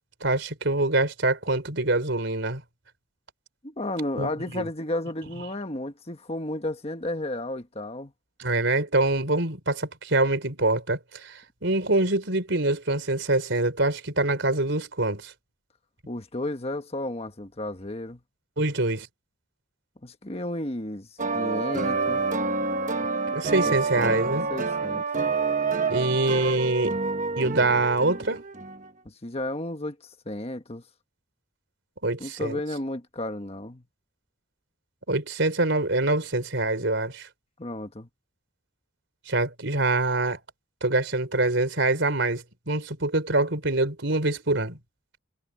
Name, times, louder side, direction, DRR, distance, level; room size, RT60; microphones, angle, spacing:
voice 1, 0.2-2.6 4.2-4.7 8.4-15.3 18.6-19.1 23.3-24.5 25.9-27.0 27.4-28.4 32.0-32.6 35.1-37.3 39.3-40.4 40.8-44.8, right 2 dB, 65° right, 4.4 m, -25 dB
voice 2, 3.6-8.1 16.1-18.2 20.0-21.1 21.3-22.2 23.6-25.0 29.0-30.0 30.2-30.8 32.2-33.8 37.6-38.1, left 1 dB, 30° left, 1.5 m, -33 dB
sound 1, 21.2-28.8, right 4 dB, 40° right, 1.2 m, -27 dB
head